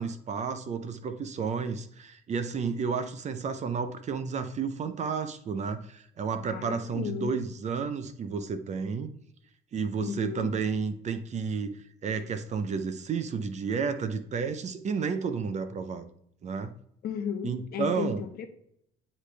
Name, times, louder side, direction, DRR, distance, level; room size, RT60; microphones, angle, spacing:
voice 1, 0.0-9.1 9.7-11.7 12.0-16.1 16.4-16.7 17.4-18.2, right 5 dB, 45° right, 0.7 m, -31 dB
voice 2, 6.5-7.4 10.0-10.6 17.0-18.5, left 8 dB, 65° left, 1.1 m, -34 dB
9.8 x 3.3 x 3.3 m
cardioid pair, 110°, 17 cm